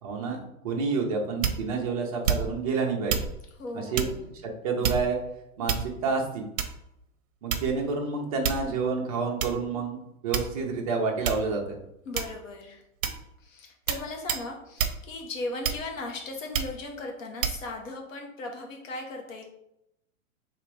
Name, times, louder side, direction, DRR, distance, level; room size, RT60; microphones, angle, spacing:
voice 1, 0.0-3.2 3.7-4.1 4.6-5.2 5.6-6.4 7.4-10.0 10.2-11.8, right 4 dB, 25° right, 0 dB, 0.6 m, -29 dB
sound 1, 1.4-1.8 2.2-2.7 3.1-3.3 3.9-4.2 4.8-5.2 5.7-6.1 6.6-6.9 7.5-7.9 8.4-8.8 9.4-9.6 10.3-10.8 11.2-11.5 12.1-12.5 13.0-13.3 13.9-14.0 14.3-14.5 14.8-15.0 15.6-16.0 16.5-16.8 17.4-17.6, right 7 dB, 65° right, 0.8 m, -28 dB
voice 2, 3.6-4.2 12.0-12.8 13.4-19.4, left 2 dB, 65° left, 2 dB, 1.3 m, -37 dB
3.4 x 2.9 x 4.7 m, 0.82 s
supercardioid pair, 175°, 42 cm